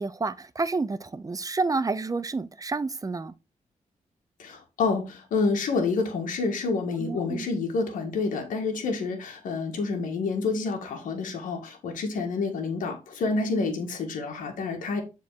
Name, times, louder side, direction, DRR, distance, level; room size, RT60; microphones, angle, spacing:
voice 1, 0.0-3.3 7.0-7.4, right 3 dB, 25° right, 0.7 m, -29 dB
voice 2, 4.4-15.0, left 4 dB, 90° left, 1.6 m, -28 dB
7.1 x 3.8 x 4.7 m
cardioid pair, 70°, 13 cm